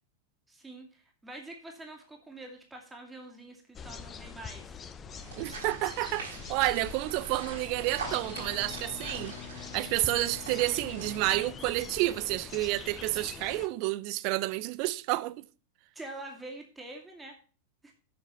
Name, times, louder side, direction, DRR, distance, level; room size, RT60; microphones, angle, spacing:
voice 1, 0.5-4.8 9.2-9.5 15.9-17.4 17.8-17.9, right 2 dB, 10° right, 2.4 m, -46 dB
sound 1, 3.7-13.7, left 6 dB, 20° left, 0.8 m, -44 dB
sound 2, 5.1-11.4, right 4 dB, 65° right, 4.5 m, -44 dB
voice 2, 5.4-9.4 9.7-15.4, right 18 dB, 45° right, 0.5 m, -30 dB
Bowed string instrument, 7.9-12.1, left 13 dB, 50° left, 1.0 m, -49 dB
7.9 x 6.5 x 6.8 m
figure-of-eight pair, 90°, 0 cm